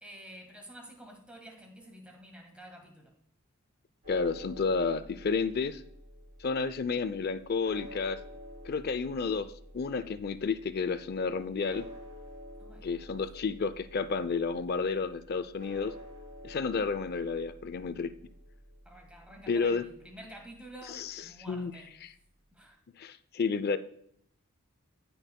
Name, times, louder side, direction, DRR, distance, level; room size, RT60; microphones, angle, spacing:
voice 1, 0.0-3.1 12.6-12.9 18.8-21.9 22.5-22.8, right 1 dB, 5° right, 2 dB, 1.5 m, -49 dB
sound 1, 4.0-21.9, equal, 35° right, 2.7 m, -51 dB
voice 2, 4.1-5.8 6.4-8.2 8.6-9.5 9.7-11.8 12.8-15.9 16.4-18.1 19.5-19.8 20.9-21.2 21.5-21.7 22.0-22.1 23.0-23.8, left 4 dB, 45° left, 13 dB, 0.4 m, -31 dB
14.5 x 5.4 x 2.2 m, 0.69 s
head